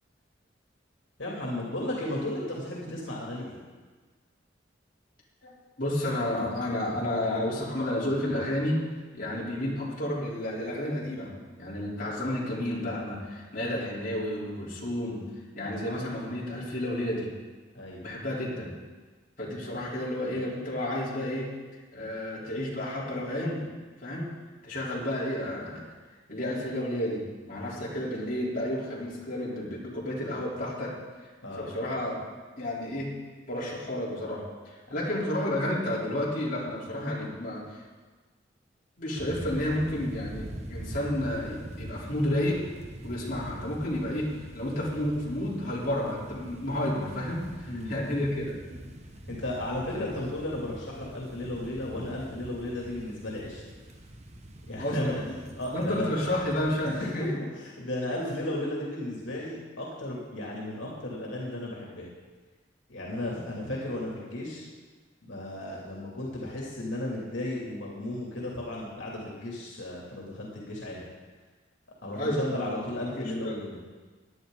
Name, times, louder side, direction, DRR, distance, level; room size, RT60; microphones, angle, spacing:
voice 1, 1.2-3.6 17.7-18.0 31.4-31.7 47.7-48.0 49.3-53.6 54.7-55.1 55.6-56.1 57.2-57.3 57.6-62.1 62.9-64.7 65.3-71.0 72.0-73.8, left 1 dB, 75° left, -4 dB, 2.9 m, -34 dB
voice 2, 5.4-8.8 9.1-11.3 11.6-15.2 15.5-17.3 18.0-18.7 19.4-21.5 21.9-23.7 24.0-24.3 24.6-25.8 26.3-30.9 31.6-32.2 32.6-33.1 33.5-37.8 39.0-42.6 43.0-48.5 49.9-50.1 54.8-55.2 55.7-57.4 72.1-72.8 73.1-73.6, left 1 dB, 50° left, -6 dB, 3.8 m, -31 dB
sound 1, 39.2-57.1, right 1 dB, 35° right, 1.2 m, -43 dB
17.5 x 11.0 x 4.0 m, 1.4 s
head